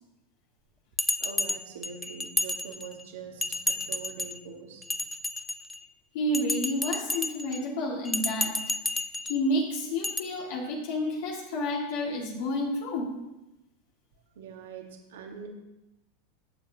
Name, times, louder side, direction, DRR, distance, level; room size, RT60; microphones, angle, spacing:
Bell, 1.0-3.0 3.4-4.4 4.8-5.8 6.3-7.6 8.1-9.4 10.0-10.2, left 2 dB, 10° left, 0.4 m, -31 dB
voice 1, 1.2-4.8 14.3-15.5, right 6 dB, 80° right, 2 dB, 1.7 m, -43 dB
voice 2, 6.1-8.6 8.9-13.2, left 1 dB, 70° left, -3 dB, 2.1 m, -30 dB
11.5 x 7.9 x 2.9 m, 0.97 s
supercardioid pair, 125°, 0 cm